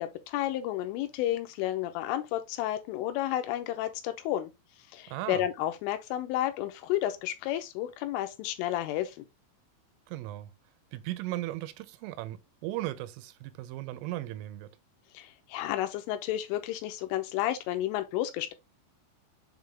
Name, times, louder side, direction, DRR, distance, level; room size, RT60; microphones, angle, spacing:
voice 1, 0.0-4.5 4.9-9.2 15.1-18.5, left 13 dB, 80° left, 3.3 m, -31 dB
voice 2, 5.1-5.4 10.1-10.5 10.9-14.7, right 16 dB, 85° right, 3.3 m, -37 dB
7.4 x 3.7 x 3.4 m
omnidirectional pair, 5.7 m